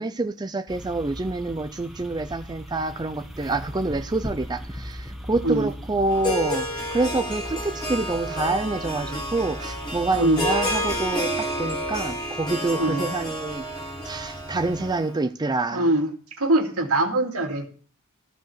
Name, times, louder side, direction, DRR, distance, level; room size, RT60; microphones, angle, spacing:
voice 1, 0.0-15.9, right 2 dB, 20° right, 0.5 m, -27 dB
sound 1, 0.7-14.9, equal, ahead, 1.4 m, -39 dB
Harp, 6.1-15.1, equal, 20° left, 2.1 m, -30 dB
voice 2, 10.1-10.4 12.8-13.1 15.7-16.1 16.4-17.7, right 1 dB, 75° right, 2.3 m, -22 dB
14.0 x 5.1 x 7.7 m
head